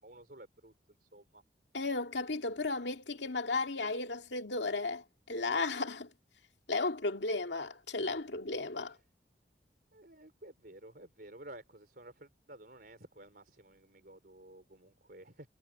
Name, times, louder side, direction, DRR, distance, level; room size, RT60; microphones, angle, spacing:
voice 1, 0.0-1.4 8.8-9.0 9.9-15.5, right 1 dB, 55° right, 4.3 m, -53 dB
voice 2, 1.7-6.1 6.7-9.0, left 3 dB, 85° left, 2.3 m, -34 dB
head